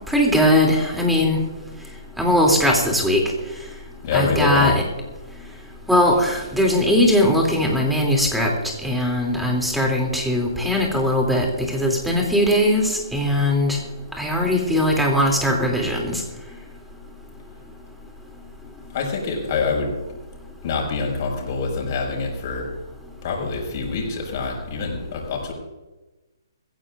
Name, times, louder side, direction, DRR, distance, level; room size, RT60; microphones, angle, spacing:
voice 1, 0.1-1.4 2.2-3.2 4.1-4.7 5.9-8.5 8.8-13.8 14.2-16.1, left 1 dB, ahead, 0 dB, 2.9 m, -19 dB
voice 2, 4.0-4.7 18.9-19.9 20.6-22.7 23.2-25.5, left 4 dB, 45° left, 0 dB, 5.7 m, -25 dB
21.5 x 15.5 x 2.5 m, 1.1 s
hypercardioid pair, 145°, 2 cm